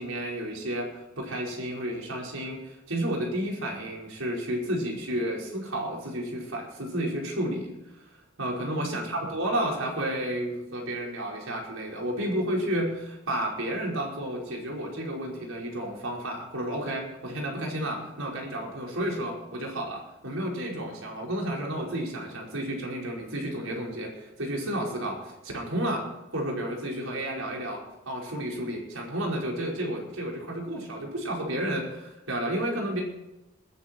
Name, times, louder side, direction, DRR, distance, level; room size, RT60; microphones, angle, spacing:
voice 1, 0.0-7.7 8.4-24.1 24.4-26.0 26.3-27.8 28.1-33.0, right 1 dB, 85° right, -2 dB, 5.2 m, -31 dB
20.5 x 10.0 x 4.6 m, 0.94 s
head